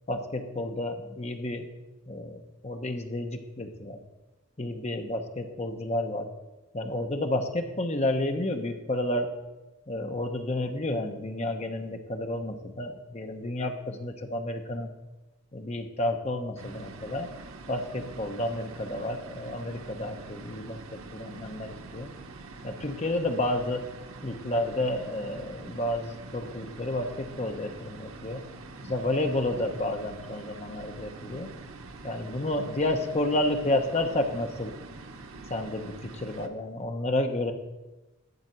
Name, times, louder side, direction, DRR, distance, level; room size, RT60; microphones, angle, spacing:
voice 1, 0.1-1.7 2.1-4.0 4.6-6.3 6.7-9.3 9.9-14.9 15.5-17.3 17.7-22.1 22.6-23.9 24.2-28.5 28.8-31.5 32.0-34.8 35.5-37.5, left 1 dB, 30° left, 5 dB, 0.9 m, -31 dB
sound 1, 16.6-36.5, right 3 dB, 90° right, 0.8 m, -45 dB
12.0 x 4.3 x 8.0 m, 1.1 s
head